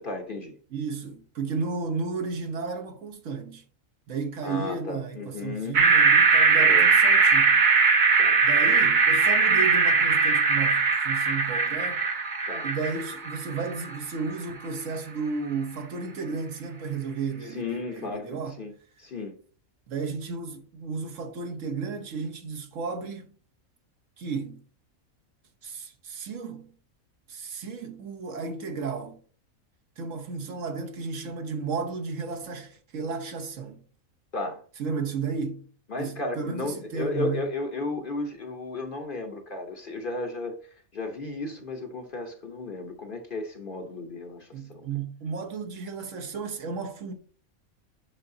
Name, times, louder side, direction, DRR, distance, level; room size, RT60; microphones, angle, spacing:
voice 1, 0.0-0.6 4.4-5.8 6.5-6.9 8.2-8.4 12.5-12.7 17.5-18.7 19.0-19.3 34.3-34.6 35.9-40.6 40.9-44.8, left 3 dB, 45° left, 0.9 m, -34 dB
voice 2, 0.7-3.6 4.1-7.6 8.4-12.0 12.6-18.6 19.9-23.3 24.2-24.6 25.6-26.7 27.3-29.2 30.0-33.8 34.8-35.6 36.0-37.5 44.5-47.1, right 5 dB, 65° right, 1.2 m, -33 dB
sound 1, 5.7-14.0, right 4 dB, 45° right, 0.8 m, -20 dB
7.4 x 5.7 x 2.7 m
omnidirectional pair, 1.5 m